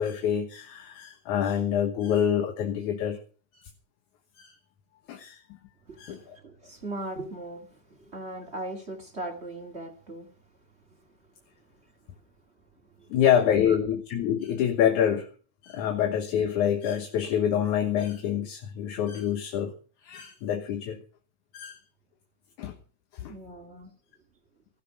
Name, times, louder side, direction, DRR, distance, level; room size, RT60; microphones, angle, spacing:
voice 1, 0.0-3.2 4.4-4.5 5.1-5.4 6.0-6.4 13.1-15.3 15.6-19.7 20.0-21.0 21.5-21.8 22.6-22.8 23.1-23.3, left 9 dB, 70° left, 2.6 m, -26 dB
voice 2, 5.8-10.3 10.9-11.2 11.8-11.9 13.0-13.1 13.7-13.8 23.3-23.9, right 1 dB, 25° right, 2.0 m, -39 dB
15.5 x 12.5 x 5.9 m
omnidirectional pair, 3.7 m